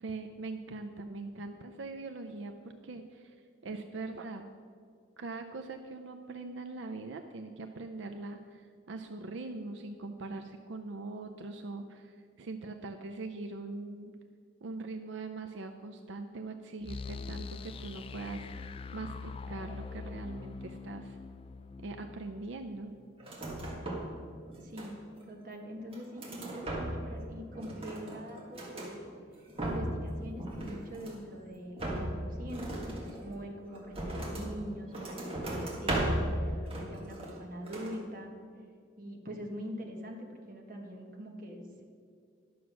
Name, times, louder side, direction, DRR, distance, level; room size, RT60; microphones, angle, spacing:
voice 1, 0.0-3.3 3.6-4.5 5.2-14.1 14.6-18.5 18.9-21.2 21.8-22.9, right 3 dB, 85° right, 6 dB, 0.5 m, -42 dB
sound 1, 16.8-23.6, left 4 dB, 30° left, 0.3 m, -44 dB
sound 2, 23.2-24.2 24.4-25.2 25.7-27.2 27.5-28.9 29.3-30.1 30.4-31.3 31.8-34.5 34.9-36.3 36.7-37.4 37.7-38.0, right 1 dB, 30° right, 1.7 m, -36 dB
voice 2, 24.6-24.9 25.3-29.1 29.6-38.3 39.0-41.8, equal, 50° right, 1 dB, 1.4 m, -43 dB
11.0 x 6.2 x 6.1 m, 2.2 s
head